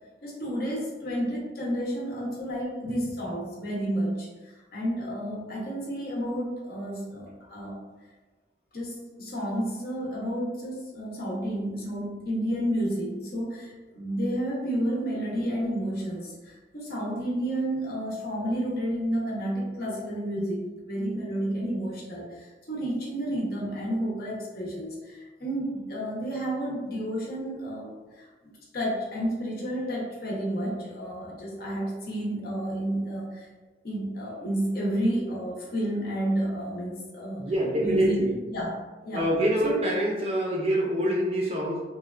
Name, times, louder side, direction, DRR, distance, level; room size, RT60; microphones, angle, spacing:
voice 1, 0.2-7.8 8.7-33.5 33.8-37.5 37.8-38.7 39.0-39.3 39.6-39.8, right 1 dB, 55° left, -4 dB, 0.7 m, -31 dB
voice 2, 37.4-38.3 39.1-41.8, right 1 dB, 35° right, -2 dB, 0.5 m, -25 dB
3.1 x 2.2 x 2.3 m, 1.2 s
head